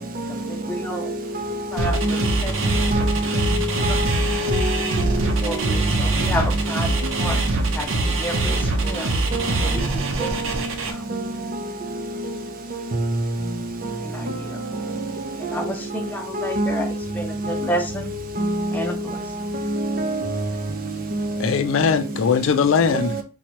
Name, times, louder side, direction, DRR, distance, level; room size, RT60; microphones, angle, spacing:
voice 1, 0.3-1.1 1.7-3.6 3.9-4.3 5.4-9.2 9.6-11.0 14.0-14.6 15.4-18.1 18.7-19.2, equal, 10° left, 0.6 m, -32 dB
sound 1, 1.8-10.9, right 2 dB, 90° right, 0.7 m, -23 dB
voice 2, 2.7-4.7 5.0-5.9 9.3-9.5 10.2-10.7 11.1-11.2 12.7-13.3 13.8-14.0 15.4-15.6 16.4-16.8 17.4-17.6 18.4-18.6 19.6-20.5 21.1-21.3 22.9-23.2, right 1 dB, 50° right, 0.6 m, -25 dB
voice 3, 21.4-23.2, left 6 dB, 75° left, 0.4 m, -20 dB
4.3 x 2.3 x 2.9 m
head